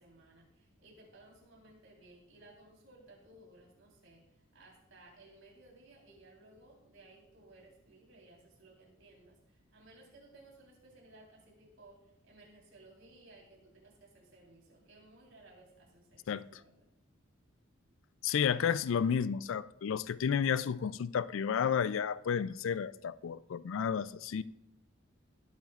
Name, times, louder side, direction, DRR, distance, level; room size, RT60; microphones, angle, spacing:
voice 1, 0.0-16.8, right 2 dB, 70° right, 3.7 m, -59 dB
voice 2, 16.3-16.6 18.2-24.4, left 7 dB, 70° left, 0.4 m, -32 dB
18.5 x 8.5 x 2.4 m
head